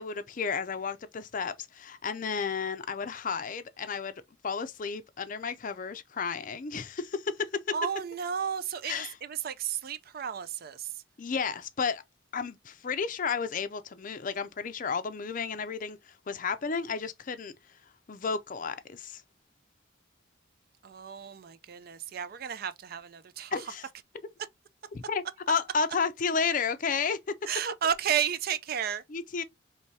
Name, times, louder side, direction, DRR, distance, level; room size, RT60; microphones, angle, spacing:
voice 1, 0.0-7.6 8.8-9.1 11.2-12.0 12.3-17.5 18.1-19.2 23.5-23.9 24.9-27.4 29.1-29.4, left 5 dB, 40° left, 0.4 m, -32 dB
voice 2, 7.7-10.9 20.8-23.6 27.5-29.0, right 8 dB, 50° right, 0.4 m, -32 dB
4.7 x 3.2 x 2.6 m
head